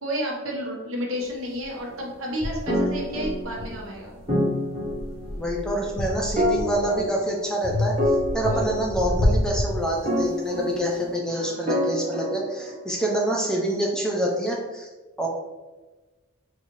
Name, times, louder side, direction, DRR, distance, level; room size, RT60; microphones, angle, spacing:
voice 1, 0.0-4.1 8.5-8.7 11.3-11.9, equal, 75° right, -2 dB, 1.0 m, -32 dB
sound 1, 1.6-1.7 2.4-4.2 4.7-7.0 7.6-10.4, left 1 dB, 75° left, 0.7 m, -29 dB
sound 2, 2.7-3.9 4.3-5.5 6.4-7.6 8.0-9.4 10.1-11.2 11.7-13.1, equal, 30° right, 1.2 m, -27 dB
voice 2, 5.4-14.9 15.2-15.3, right 1 dB, 5° left, -2 dB, 0.4 m, -26 dB
4.2 x 2.4 x 3.0 m, 1.2 s
head